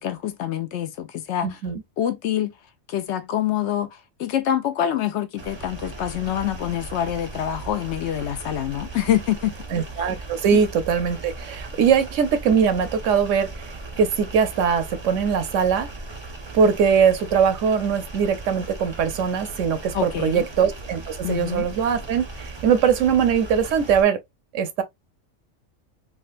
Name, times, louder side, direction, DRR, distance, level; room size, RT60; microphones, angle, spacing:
voice 1, 0.0-1.6 2.0-2.5 2.9-9.5 10.5-10.6 19.9-20.5 21.2-21.7, left 11 dB, 70° left, 0.8 m, -26 dB
voice 2, 1.4-1.8 9.7-15.9 16.5-24.2 24.5-24.8, right 7 dB, 85° right, 1.0 m, -21 dB
sound 1, 5.4-24.0, right 3 dB, 35° right, 0.5 m, -38 dB
3.7 x 2.1 x 2.5 m
omnidirectional pair, 1.3 m